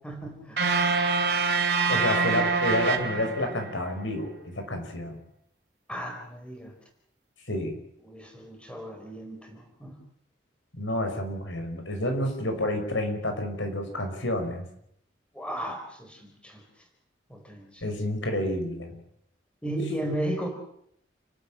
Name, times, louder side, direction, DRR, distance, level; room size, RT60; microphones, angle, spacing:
voice 1, 0.0-0.6 5.9-6.7 8.1-10.0 15.3-16.6 17.3-17.9 19.6-20.5, right 1 dB, 5° left, 3 dB, 4.6 m, -35 dB
sound 1, 0.6-3.8, right 4 dB, 60° right, 3.2 m, -25 dB
voice 2, 1.9-5.2 7.5-7.8 10.7-14.6 17.8-18.9, left 1 dB, 90° left, 5 dB, 5.8 m, -29 dB
29.5 x 13.0 x 8.8 m, 0.71 s
head